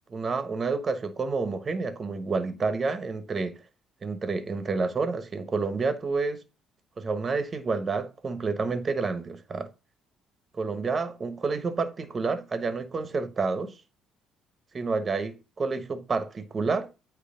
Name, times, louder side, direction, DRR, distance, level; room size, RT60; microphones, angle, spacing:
voice 1, 0.1-3.5 4.0-6.4 7.0-9.7 10.5-13.8 14.7-16.9, right 4 dB, 35° right, 1.2 m, -29 dB
8.3 x 3.2 x 5.1 m
supercardioid pair, 75°, 0 cm